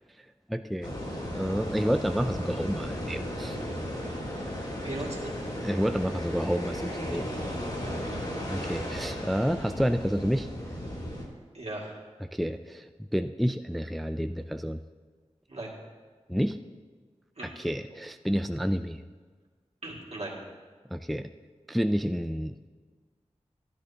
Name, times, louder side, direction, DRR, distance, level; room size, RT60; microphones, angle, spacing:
voice 1, 0.5-1.0 1.3-3.6 5.6-7.3 8.5-10.5 12.3-14.8 16.3-16.6 17.4-19.0 20.9-21.3 21.7-22.7, equal, ahead, 9 dB, 0.3 m, -29 dB
sound 1, 0.8-11.3, equal, 40° left, 2.8 m, -35 dB
voice 2, 4.8-5.3 7.8-8.6 11.5-12.0 15.5-15.7 17.4-17.5 19.8-20.4, right 2 dB, 65° right, -3 dB, 2.2 m, -38 dB
12.5 x 11.0 x 2.9 m, 1.5 s
wide cardioid pair, 60°, 12 cm